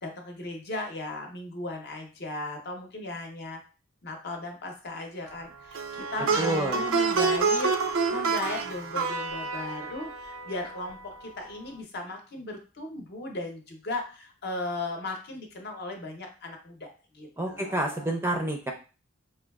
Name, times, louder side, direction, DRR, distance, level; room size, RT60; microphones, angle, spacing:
voice 1, 0.0-3.6 4.0-16.9 17.1-18.1, left 2 dB, 55° left, 3 dB, 0.8 m, -36 dB
Plucked string instrument, 5.7-11.0, right 5 dB, 80° right, 0.4 m, -28 dB
voice 2, 6.4-6.8 17.4-18.7, right 1 dB, 10° right, 2 dB, 0.4 m, -28 dB
4.8 x 2.3 x 2.3 m, 0.34 s
head